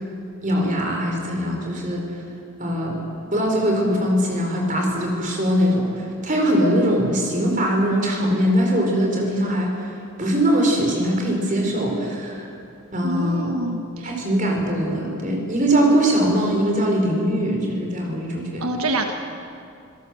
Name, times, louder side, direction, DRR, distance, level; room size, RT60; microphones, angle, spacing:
voice 1, 0.4-2.0 2.6-3.0 3.3-9.7 10.2-12.4 12.9-13.5 14.0-18.7, equal, 35° right, 1 dB, 4.8 m, -21 dB
voice 2, 13.0-14.1 18.6-19.1, right 2 dB, 85° right, 4 dB, 1.5 m, -26 dB
27.5 x 17.0 x 7.9 m, 2.5 s
head